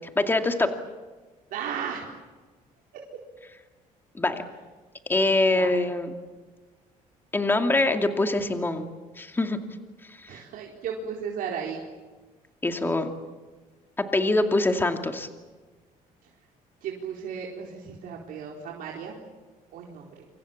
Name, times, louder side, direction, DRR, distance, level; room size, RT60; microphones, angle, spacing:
voice 1, 0.2-0.7 4.1-4.4 5.1-6.1 7.3-8.9 9.2-9.6 10.1-10.4 12.6-13.1 14.0-15.3, left 2 dB, 15° left, 5 dB, 2.5 m, -24 dB
voice 2, 1.5-2.0 2.9-3.2 5.4-5.8 10.3-11.8 16.8-19.2 19.7-20.3, right 7 dB, 75° right, -1 dB, 4.3 m, -35 dB
28.0 x 26.0 x 7.4 m, 1.3 s
cardioid pair, 130°, 15 cm